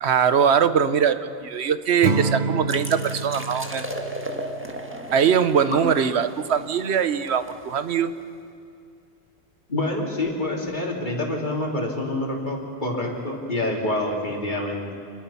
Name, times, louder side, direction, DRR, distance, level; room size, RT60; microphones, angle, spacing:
voice 1, 0.0-3.8 5.1-8.1, right 7 dB, 85° right, 12 dB, 1.2 m, -21 dB
Acoustic guitar / Strum, 2.0-5.4, right 4 dB, 45° right, 0.8 m, -29 dB
sound 1, 2.7-8.2, right 1 dB, 10° right, 1.7 m, -36 dB
voice 2, 9.7-14.9, left 1 dB, 45° left, -1 dB, 3.3 m, -27 dB
27.5 x 22.0 x 5.7 m, 2.4 s
omnidirectional pair, 1.1 m